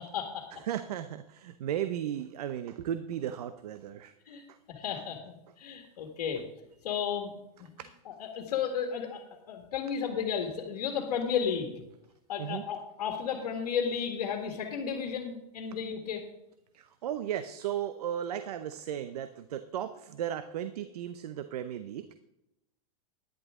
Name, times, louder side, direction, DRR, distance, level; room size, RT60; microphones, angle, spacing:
voice 1, 0.0-0.5 4.2-4.4 4.7-6.4 6.8-7.3 7.6-7.7 8.1-9.2 9.5-11.8 12.3-16.2, left 7 dB, 75° left, 3 dB, 1.8 m, -33 dB
voice 2, 0.5-4.1 4.5-4.6 7.8-7.9 12.4-12.6 16.7-22.1, right 10 dB, 80° right, 11 dB, 0.7 m, -35 dB
11.0 x 10.5 x 3.7 m, 0.86 s
supercardioid pair, 150°, 20 cm